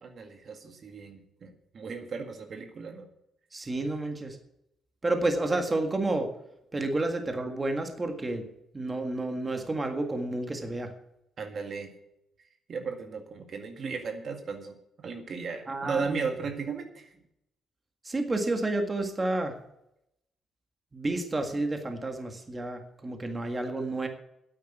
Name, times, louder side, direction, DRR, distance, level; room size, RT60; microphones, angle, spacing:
voice 1, 0.0-3.1 11.4-11.9 12.7-17.1, right 5 dB, 50° right, 5 dB, 1.9 m, -36 dB
voice 2, 3.5-4.4 5.0-6.3 6.7-8.4 8.7-10.9 15.7-16.3 18.1-19.5 20.9-24.1, right 2 dB, 25° right, 5 dB, 1.8 m, -30 dB
9.7 x 8.4 x 9.2 m, 0.82 s
cardioid pair, 90°, 0 cm